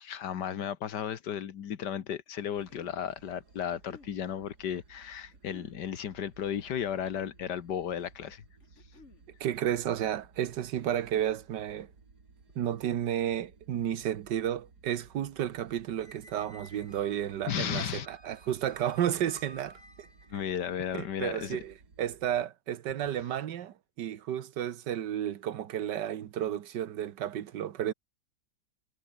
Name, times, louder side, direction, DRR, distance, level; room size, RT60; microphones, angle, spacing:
voice 1, 0.1-8.4 17.5-18.1 20.3-21.6, left 9 dB, 75° left, 1.8 m, -34 dB
sound 1, 2.3-3.0 3.7-4.2 5.3-5.8 6.8-7.4 8.6-9.3, left 4 dB, 40° left, 2.5 m, -55 dB
sound 2, 2.5-22.4, right 4 dB, 65° right, 3.7 m, -59 dB
voice 2, 9.4-11.9 12.5-20.1 21.0-27.9, right 10 dB, 90° right, 1.7 m, -32 dB
Squeak, 16.0-20.5, left 1 dB, 15° left, 3.0 m, -55 dB
omnidirectional pair, 1.8 m